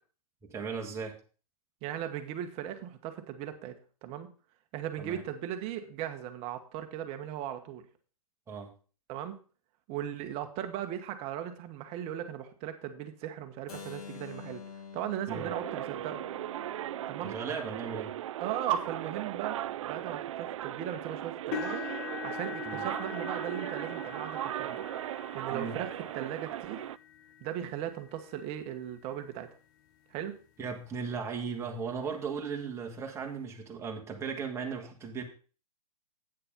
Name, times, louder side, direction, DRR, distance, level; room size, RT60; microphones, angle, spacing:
voice 1, 0.5-1.2 5.0-5.2 8.5-8.7 15.3-15.5 17.2-18.1 22.7-22.8 25.5-25.8 30.6-35.2, right 5 dB, 15° right, 0 dB, 1.8 m, -37 dB
voice 2, 1.8-3.7 4.0-4.3 4.7-7.8 9.1-9.4 9.9-16.2 17.1-17.3 18.4-19.6 19.8-21.8 22.2-24.8 25.3-26.9 27.4-29.5 30.1-30.3, right 10 dB, 30° right, 7 dB, 1.4 m, -37 dB
Keyboard (musical), 13.7-19.5, left 6 dB, 70° left, 1.5 m, -49 dB
sound 1, 15.3-27.0, right 12 dB, 55° right, 0.4 m, -37 dB
sound 2, 21.5-29.5 30.2-30.4 30.9-31.0 32.3-32.4, left 9 dB, 35° left, 1.3 m, -43 dB
9.0 x 6.7 x 5.3 m, 0.39 s
hypercardioid pair, 130°, 20 cm